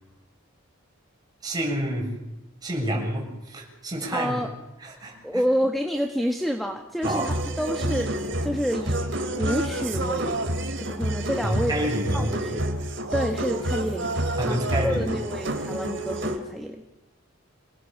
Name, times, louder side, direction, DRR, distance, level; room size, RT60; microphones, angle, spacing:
voice 1, 1.4-2.1 2.6-4.4 4.8-5.4 7.0-7.3 11.4-12.3 14.4-15.1, right 1 dB, 20° right, -1 dB, 7.4 m, -28 dB
voice 2, 4.1-4.5 5.2-9.1 9.4-10.4 10.8-12.7 13.1-14.1 14.4-16.8, equal, ahead, 4 dB, 1.5 m, -28 dB
sound 1, 7.0-16.4, right 1 dB, 55° right, 3.1 m, -28 dB
27.5 x 19.0 x 7.3 m, 0.98 s
head